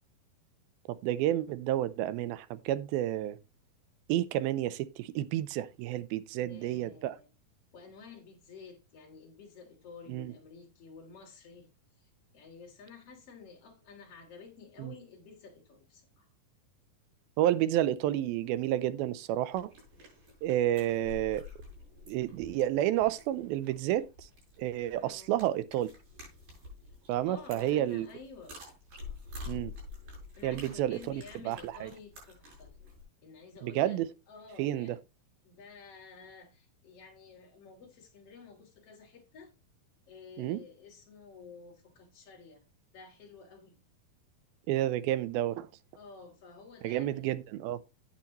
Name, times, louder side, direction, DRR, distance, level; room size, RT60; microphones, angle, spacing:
voice 1, 0.9-3.4 4.1-7.2 10.1-10.3 14.8-14.9 17.4-19.7 20.4-21.5 22.1-24.3 24.6-25.9 27.1-28.1 29.5-29.7 30.4-31.9 33.6-34.1 34.6-35.0 40.4-40.6 44.7-45.7 46.8-47.8, right 13 dB, 85° right, 2.5 m, -30 dB
voice 2, 6.4-7.3 7.7-11.7 12.0-16.3 25.0-25.3 26.8-26.9 27.2-28.6 30.4-32.7 33.2-34.0 34.3-35.0 35.4-39.5 40.1-42.6 42.9-43.8 45.9-47.2, left 5 dB, 40° left, 3.7 m, -52 dB
sound 1, 19.5-33.0, left 3 dB, 65° right, 8.3 m, -49 dB
10.0 x 8.8 x 3.0 m
omnidirectional pair, 4.2 m